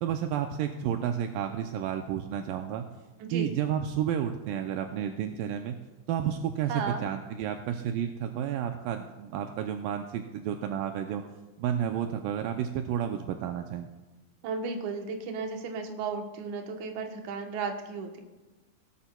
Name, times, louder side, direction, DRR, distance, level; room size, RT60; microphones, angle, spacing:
voice 1, 0.0-2.9 3.3-5.8 6.1-11.2 11.6-13.9, right 9 dB, 80° right, 5 dB, 2.1 m, -31 dB
voice 2, 3.2-3.6 6.7-7.0 14.4-18.2, right 5 dB, 65° right, 3 dB, 2.2 m, -34 dB
17.5 x 12.5 x 2.3 m, 1.1 s
omnidirectional pair, 4.3 m